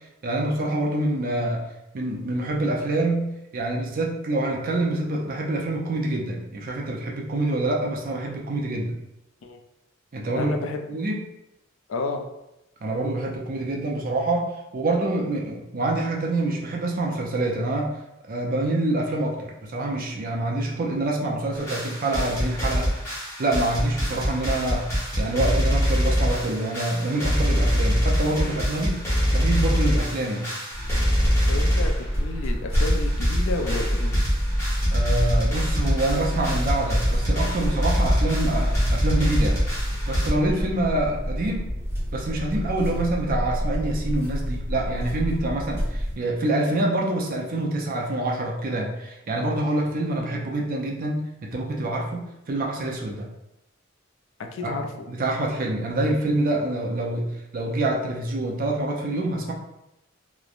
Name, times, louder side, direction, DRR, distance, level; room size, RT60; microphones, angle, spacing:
voice 1, 0.2-1.7 1.9-9.0 10.1-11.2 12.8-17.9 18.3-22.9 23.4-24.9 25.2-29.0 29.3-30.5 34.9-39.6 40.1-41.7 42.1-53.3 54.6-54.8 55.1-57.3 57.5-59.5, right 2 dB, 45° right, 0 dB, 0.5 m, -26 dB
voice 2, 10.3-10.8 11.9-12.2 31.5-34.2 42.9-43.0 54.4-55.1, left 3 dB, 70° left, 5 dB, 0.3 m, -31 dB
sound 1, 21.5-32.2 32.5-32.6 32.7-40.3, equal, 15° left, 0.9 m, -24 dB
sound 2, 30.7-46.2, equal, 15° right, 0.7 m, -29 dB
3.0 x 2.0 x 2.4 m, 0.89 s
head